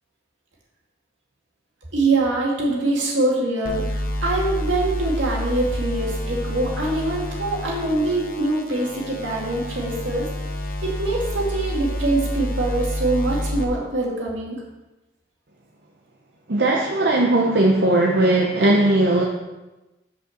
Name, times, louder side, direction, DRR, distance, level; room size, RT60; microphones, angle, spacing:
voice 1, 1.9-10.3 10.8-14.6, right 2 dB, 85° right, -3 dB, 2.2 m, -24 dB
sound 1, 3.6-13.6, left 1 dB, 45° left, 0.9 m, -28 dB
voice 2, 16.5-19.2, right 2 dB, 65° right, -1 dB, 0.8 m, -18 dB
6.4 x 5.2 x 6.4 m, 1.0 s
head